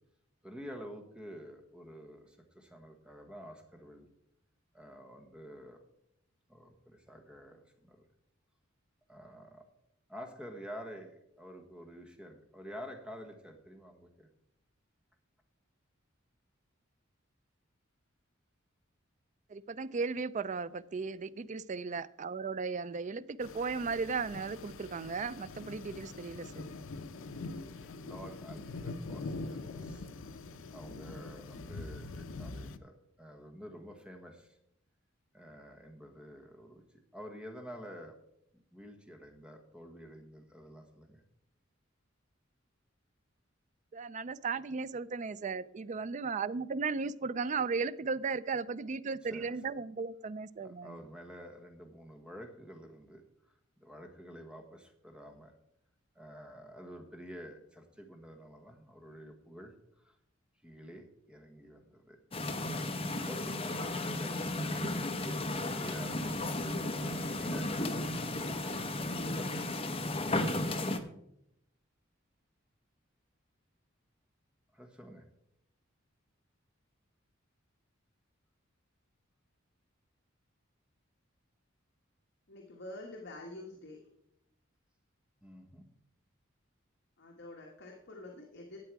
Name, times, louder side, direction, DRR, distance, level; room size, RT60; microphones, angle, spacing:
voice 1, 0.4-4.1 4.7-5.8 6.5-8.0 9.1-9.6 10.1-14.3 27.8-30.1 30.7-34.6 35.3-36.8 37.1-38.2 38.7-41.2 49.2-49.7 50.6-55.5 56.1-60.2 60.6-62.8 63.2-63.5 63.8-66.4 67.0-68.2 68.6-68.7 69.4-69.7 74.7-75.3 85.4-85.9, equal, 5° right, 4 dB, 1.3 m, -49 dB
voice 2, 19.5-26.7 43.9-51.0, right 4 dB, 40° right, 16 dB, 0.4 m, -36 dB
sound 1, 23.4-32.8, left 3 dB, 75° left, 0.6 m, -44 dB
sound 2, 62.3-71.0, left 2 dB, 30° left, 0.9 m, -34 dB
voice 3, 82.5-84.0 87.2-88.8, left 1 dB, 60° left, -1 dB, 1.5 m, -47 dB
11.5 x 8.3 x 4.7 m, 0.78 s
head